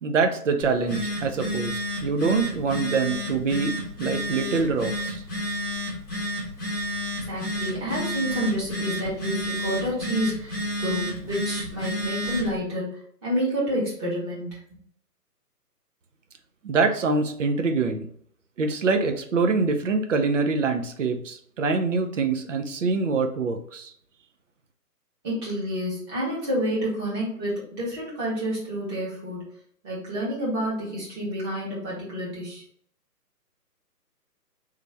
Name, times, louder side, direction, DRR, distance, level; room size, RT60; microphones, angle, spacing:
voice 1, 0.0-5.2 16.6-18.1 18.6-23.9, right 4 dB, 50° right, 6 dB, 0.6 m, -25 dB
Telephone, 0.6-12.6, equal, 10° left, 1.0 m, -31 dB
voice 2, 7.3-14.6 25.2-29.4 29.8-32.6, equal, 15° right, -7 dB, 1.2 m, -29 dB
3.4 x 3.3 x 3.3 m, 0.63 s
figure-of-eight pair, 140°, 48 cm